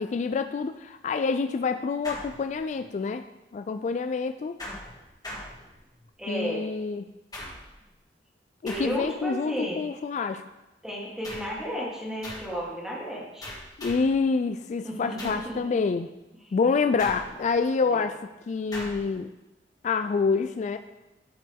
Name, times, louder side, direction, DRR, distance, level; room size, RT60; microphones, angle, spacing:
voice 1, 0.0-3.2 3.5-4.6 6.3-7.1 8.6-10.4 13.8-16.1 16.5-18.1 18.5-19.3 19.8-20.8, left 4 dB, 40° left, 8 dB, 0.3 m, -27 dB
sound 1, 2.0-2.9 4.6-6.1 7.3-7.9 8.7-9.3 11.2-11.7 12.2-12.6 13.4-14.2 15.2-15.6 17.0-17.6 18.7-19.1, left 1 dB, 20° left, 1.5 m, -41 dB
voice 2, 6.2-6.7 8.6-9.8 10.8-13.5 14.8-15.6 17.8-18.1, equal, 5° right, -5 dB, 1.6 m, -33 dB
12.0 x 5.3 x 3.5 m, 1.0 s
head